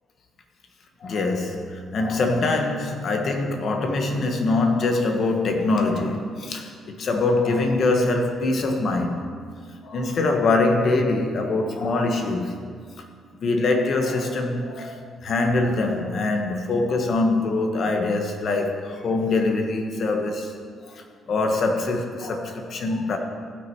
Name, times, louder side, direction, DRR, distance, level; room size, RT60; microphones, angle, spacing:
voice 1, 1.0-9.3 9.8-12.6 13.4-20.5 20.9-23.2, left 2 dB, 55° left, 4 dB, 1.4 m, -23 dB
17.0 x 6.4 x 4.7 m, 2.1 s
cardioid pair, 90°, 0 cm